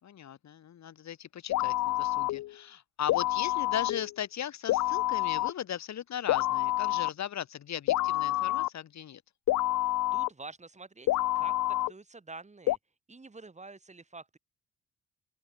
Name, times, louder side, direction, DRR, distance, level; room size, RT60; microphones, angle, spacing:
voice 1, 0.0-9.2, left 10 dB, 65° left, 5.3 m, -38 dB
sound 1, 1.5-2.5 3.1-4.1 4.7-5.5 6.3-7.1 7.9-8.7 9.5-10.3 11.1-11.9 12.7-12.8, left 16 dB, 80° left, 0.9 m, -28 dB
voice 2, 10.1-11.1 11.3-12.8 13.1-14.4, right 3 dB, 25° right, 5.0 m, -47 dB
open air
cardioid pair, 90°, 30 cm